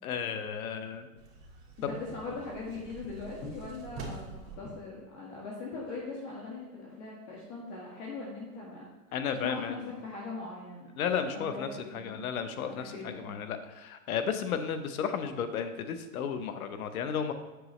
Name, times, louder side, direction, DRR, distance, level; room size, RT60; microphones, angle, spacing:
voice 1, 0.0-1.1 1.8-1.9 9.1-9.8 11.0-11.7 11.9-17.3, left 7 dB, 80° left, 9 dB, 0.9 m, -33 dB
sound 1, 1.2-4.6, right 3 dB, 30° right, 1.7 m, -46 dB
voice 2, 1.8-8.9 9.4-9.8 10.0-10.9 11.2-12.2 12.7-13.3 14.3-14.5, left 3 dB, 50° left, -3 dB, 1.7 m, -41 dB
8.0 x 6.1 x 3.2 m, 1.2 s
hypercardioid pair, 130°, 42 cm